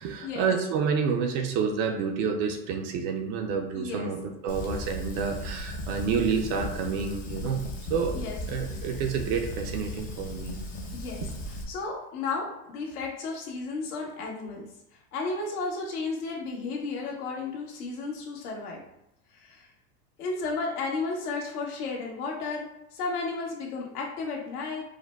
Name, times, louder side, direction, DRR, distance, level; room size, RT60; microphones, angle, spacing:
voice 1, 0.0-7.6 7.9-8.2 8.5-10.6, right 6 dB, 40° right, 4 dB, 0.6 m, -29 dB
voice 2, 3.7-4.1 8.1-8.4 10.9-11.2 11.5-14.6 14.9-18.8 19.3-19.7 20.2-24.8, left 3 dB, 75° left, -2 dB, 1.7 m, -33 dB
Fire, 4.5-11.6, left 1 dB, 20° left, 0.4 m, -36 dB
4.9 x 2.2 x 4.5 m, 0.85 s
supercardioid pair, 150°, 45 cm